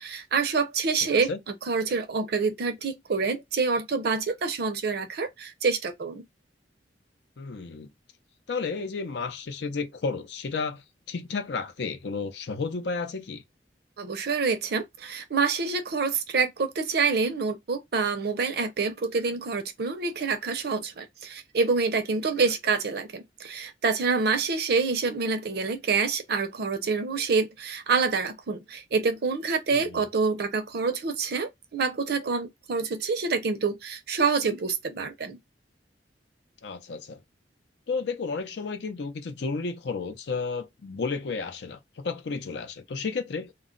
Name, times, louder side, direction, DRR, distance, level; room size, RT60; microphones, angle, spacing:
voice 1, 0.0-6.2 14.0-35.4, right 4 dB, 60° right, 0.5 m, -27 dB
voice 2, 7.4-7.9 8.5-13.4 29.7-30.0 36.6-37.2 37.9-43.5, left 4 dB, 70° left, 0.5 m, -32 dB
2.2 x 2.1 x 3.7 m
head